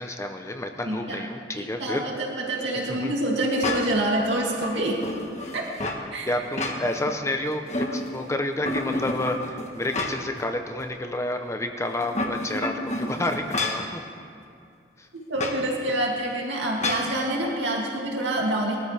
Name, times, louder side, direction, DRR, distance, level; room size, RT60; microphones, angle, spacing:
voice 1, 0.0-2.0 2.9-3.1 6.3-14.0 15.0-15.1, left 1 dB, 15° left, 5 dB, 0.7 m, -30 dB
voice 2, 0.9-1.2 1.6-5.1 5.5-5.6 6.1-6.4 15.3-18.8, right 1 dB, 85° right, -2 dB, 2.5 m, -26 dB
sound 1, 3.6-4.1 4.6-6.1 6.4-7.2 7.5-8.3 8.7-10.4 10.8-10.9 11.9-13.9 15.4-15.6 16.8-17.1, left 2 dB, 40° left, 1.3 m, -30 dB
21.0 x 13.5 x 3.4 m, 2.4 s
head